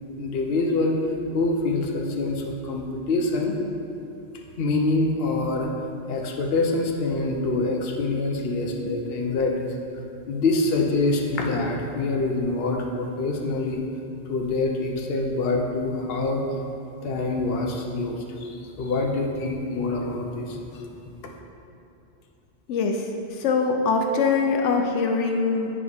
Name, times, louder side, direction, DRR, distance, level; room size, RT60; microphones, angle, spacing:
voice 1, 0.2-1.0 1.3-3.6 4.6-5.7 6.1-9.7 10.3-13.8 14.2-16.4 17.0-20.8, left 3 dB, 60° left, 1 dB, 0.9 m, -25 dB
voice 2, 22.7-25.7, left 4 dB, 85° left, 3 dB, 0.9 m, -23 dB
8.9 x 5.0 x 3.4 m, 2.8 s
omnidirectional pair, 1.2 m